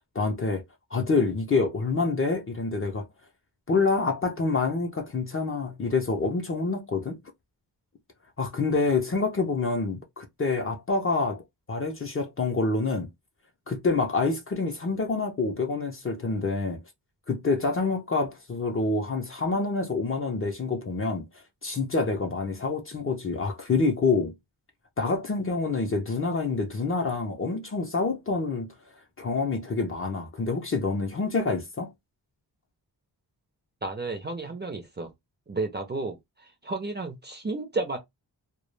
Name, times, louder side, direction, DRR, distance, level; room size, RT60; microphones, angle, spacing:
voice 1, 0.1-0.6 0.9-3.1 3.7-7.2 8.4-11.4 11.7-13.1 13.7-16.8 17.3-21.2 21.6-24.3 25.0-28.7 29.2-31.9, left 3 dB, 30° left, 0.4 m, -27 dB
voice 2, 33.8-35.1 35.5-36.2 36.4-38.0, right 3 dB, 25° right, 0.4 m, -32 dB
2.2 x 2.1 x 3.1 m
wide cardioid pair, 170°, 42 cm